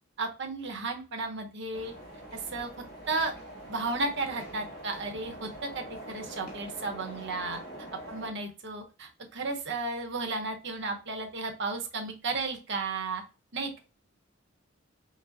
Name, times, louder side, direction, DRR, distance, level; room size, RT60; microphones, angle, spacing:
voice 1, 0.2-1.9 2.3-2.7 3.1-3.3 3.7-7.6 8.1-13.2 13.5-13.8, right 3 dB, 60° right, 4 dB, 0.9 m, -34 dB
sound 1, 1.7-8.3, right 1 dB, 55° left, 1.2 m, -44 dB
5.9 x 2.0 x 2.7 m, 0.32 s
head